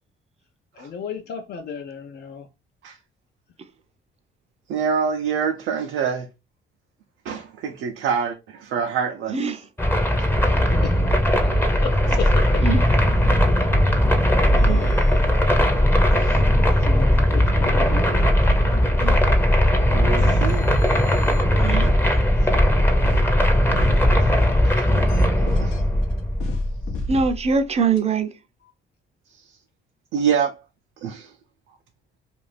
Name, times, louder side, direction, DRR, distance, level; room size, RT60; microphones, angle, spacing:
voice 1, 0.8-2.5 10.8-11.4 11.8-12.6 14.6-15.0 15.5-15.6 16.8-18.2 22.1-22.2, left 6 dB, 55° left, 0.5 m, -34 dB
voice 2, 4.7-6.3 7.2-9.4 10.2-10.3 12.1-12.2 16.1-16.4 19.9-20.7 24.2-24.3 24.6-24.8 25.4-25.8 30.1-30.6 31.0-31.3, right 6 dB, 85° right, 0.5 m, -26 dB
voice 3, 9.3-9.6 12.6-12.9 14.7-14.8 19.0-19.2 21.6-21.9 27.1-28.3, right 5 dB, 30° right, 0.5 m, -23 dB
sound 1, 9.8-27.1, equal, 10° left, 0.6 m, -18 dB
sound 2, 13.8-16.1 16.7-16.8 17.0-22.5 23.0-28.0, left 2 dB, 90° left, 0.7 m, -34 dB
2.5 x 2.4 x 3.2 m
cardioid pair, 90°, 20 cm